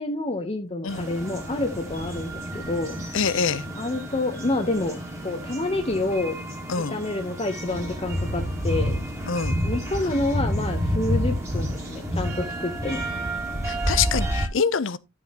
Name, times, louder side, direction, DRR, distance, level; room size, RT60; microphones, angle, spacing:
voice 1, 0.0-3.0 3.7-6.4 6.8-9.0 9.6-13.0, left 2 dB, 30° left, 0.9 m, -28 dB
sound 1, 0.9-14.5, equal, 15° right, 2.2 m, -29 dB
voice 2, 3.1-3.7 6.7-7.0 9.3-9.5 13.6-15.0, left 6 dB, 65° left, 0.7 m, -25 dB
11.5 x 7.4 x 2.9 m
head